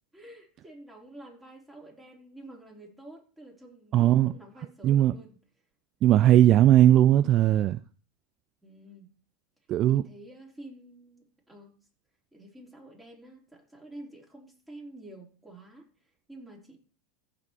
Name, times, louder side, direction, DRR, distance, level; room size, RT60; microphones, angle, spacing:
voice 1, 0.1-5.4 8.6-9.1 9.9-11.7 12.3-15.9 16.3-16.8, right 1 dB, 10° right, 4.2 m, -49 dB
voice 2, 3.9-4.3 4.8-5.1 6.0-7.8 9.7-10.0, right 12 dB, 45° right, 0.4 m, -19 dB
15.0 x 5.1 x 4.8 m
hypercardioid pair, 105°, 0 cm